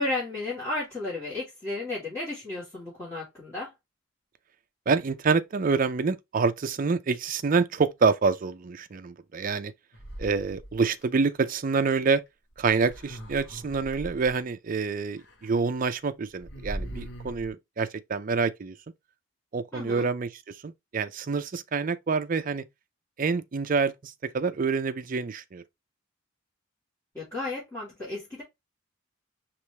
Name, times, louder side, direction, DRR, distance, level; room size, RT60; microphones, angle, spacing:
voice 1, 0.0-3.7 19.7-20.1 27.1-28.4, left 2 dB, 15° left, 2.7 m, -33 dB
voice 2, 4.9-9.7 10.2-12.2 12.6-18.8 19.5-22.7 23.2-25.6, right 4 dB, 40° right, 0.4 m, -27 dB
sound 1, 9.9-11.0 12.5-14.3 15.2-15.5 15.8-15.9 16.3-17.5, right 1 dB, 60° left, 1.6 m, -40 dB
5.0 x 3.1 x 3.2 m
head